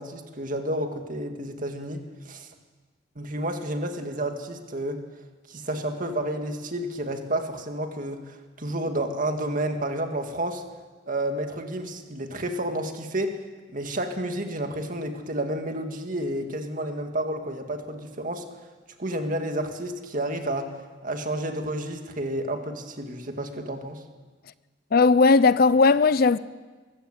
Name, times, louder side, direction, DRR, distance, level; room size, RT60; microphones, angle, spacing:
voice 1, 0.0-2.5 3.2-5.0 5.5-10.6 11.1-13.4 13.7-18.5 19.0-20.7 21.0-24.0, right 1 dB, 45° right, 2.1 m, -30 dB
voice 2, 24.9-26.4, left 4 dB, 55° left, 0.5 m, -17 dB
23.0 x 15.0 x 8.0 m
head